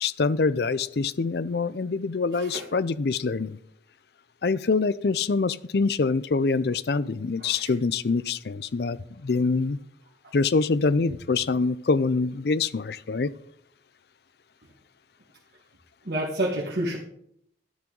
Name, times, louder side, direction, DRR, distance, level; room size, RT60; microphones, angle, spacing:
voice 1, 0.0-3.6 4.4-9.8 10.3-13.3, left 4 dB, 60° left, 18 dB, 0.5 m, -25 dB
voice 2, 16.0-17.0, right 1 dB, 60° right, -3 dB, 1.7 m, -29 dB
11.5 x 10.5 x 3.9 m, 0.70 s
head